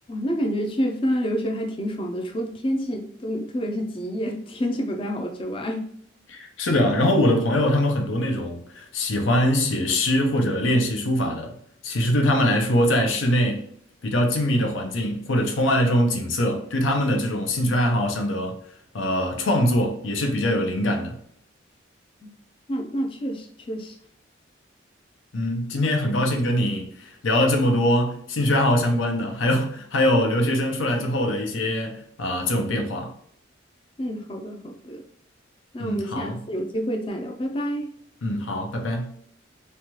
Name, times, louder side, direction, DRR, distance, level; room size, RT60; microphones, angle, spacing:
voice 1, 0.1-5.9 22.7-24.0 34.0-35.0 35.7-37.9, equal, 25° left, 0.4 m, -28 dB
voice 2, 6.3-11.6 11.8-13.7 14.0-18.5 18.9-21.2 25.3-33.1 35.8-36.4 38.2-39.1, left 1 dB, 85° left, 0.6 m, -23 dB
3.2 x 2.2 x 2.9 m
head